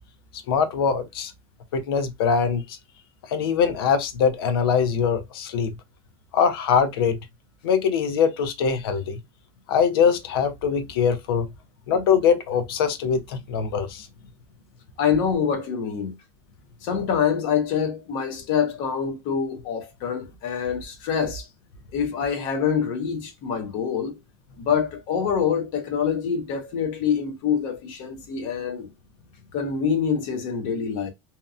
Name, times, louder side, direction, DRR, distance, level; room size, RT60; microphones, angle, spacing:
voice 1, 0.5-1.3 1.7-2.8 3.2-5.7 6.3-7.2 7.6-9.2 9.7-11.5 11.9-14.1, left 6 dB, 75° left, 0.7 m, -22 dB
voice 2, 15.0-16.1 16.8-21.5 21.9-24.2 24.6-28.9 29.5-31.1, left 7 dB, 40° left, 0.7 m, -25 dB
2.8 x 2.2 x 2.4 m
supercardioid pair, 175°, 12 cm